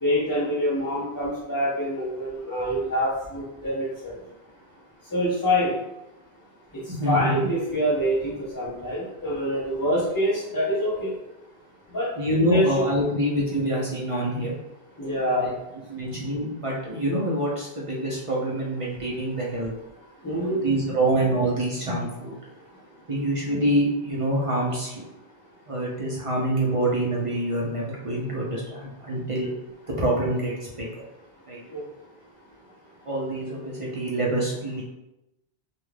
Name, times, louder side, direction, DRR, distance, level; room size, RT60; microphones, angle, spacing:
voice 1, 0.0-4.1 5.1-5.7 6.7-11.1 11.9-12.1 12.4-12.9 15.0-15.5 20.2-20.6 31.7-31.8, equal, 30° left, -8 dB, 0.4 m, -26 dB
voice 2, 6.9-7.4 12.2-14.6 15.2-15.5 15.9-19.7 20.4-22.3 23.1-25.0 25.7-29.5 30.0-31.0 31.5-31.6 33.1-34.8, right 1 dB, 45° right, -4 dB, 0.5 m, -26 dB
2.4 x 2.2 x 3.1 m, 0.91 s
omnidirectional pair, 1.0 m